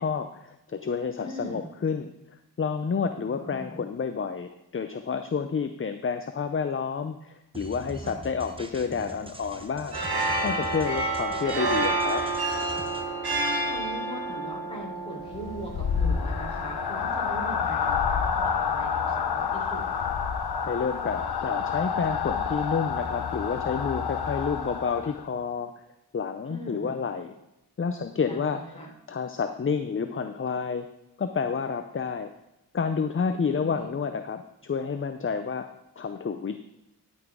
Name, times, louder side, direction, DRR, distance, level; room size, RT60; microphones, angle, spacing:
voice 1, 0.0-2.1 2.6-10.0 10.4-12.2 20.6-25.7 26.1-27.3 27.8-30.9 31.2-32.3 32.7-35.7 36.0-36.6, left 5 dB, 35° left, 8 dB, 0.5 m, -29 dB
voice 2, 1.2-1.7 3.2-3.9 8.0-8.3 13.3-19.8 26.5-27.0 28.2-28.9 33.4-33.9, right 1 dB, 15° left, -2 dB, 3.6 m, -40 dB
sound 1, 7.5-13.0, right 1 dB, 15° right, 1.0 m, -42 dB
sound 2, 9.9-17.2, right 2 dB, 75° right, 1.7 m, -29 dB
sound 3, 15.3-25.3, left 6 dB, 75° left, 0.8 m, -28 dB
12.0 x 6.1 x 3.6 m, 0.92 s
cardioid pair, 60°, 39 cm